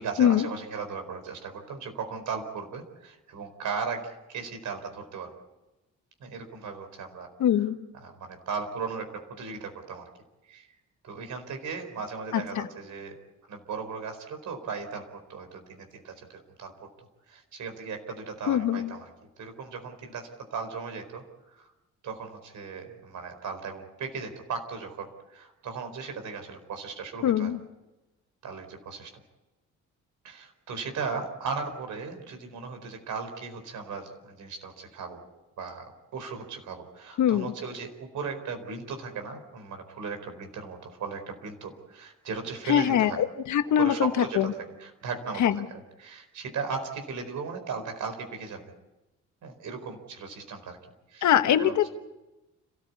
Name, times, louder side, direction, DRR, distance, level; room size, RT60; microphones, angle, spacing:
voice 1, 0.0-4.0 4.3-5.3 6.2-7.3 8.0-10.0 10.5-10.7 11.0-13.1 13.5-15.0 15.3-16.7 17.3-19.1 19.4-21.7 22.0-27.5 28.4-29.1 30.2-35.2 35.6-35.9 36.1-43.2 43.8-48.7 49.4-50.8 51.1-51.3 51.6-51.7, right 5 dB, 70° right, 6 dB, 4.6 m, -37 dB
voice 2, 7.4-7.8 12.3-12.7 18.5-18.9 27.2-27.6 37.2-37.5 42.7-44.5 45.4-45.7 51.2-51.9, left 10 dB, 75° left, 9 dB, 1.5 m, -23 dB
29.5 x 14.0 x 8.5 m, 1.0 s
cardioid pair, 90°, 30 cm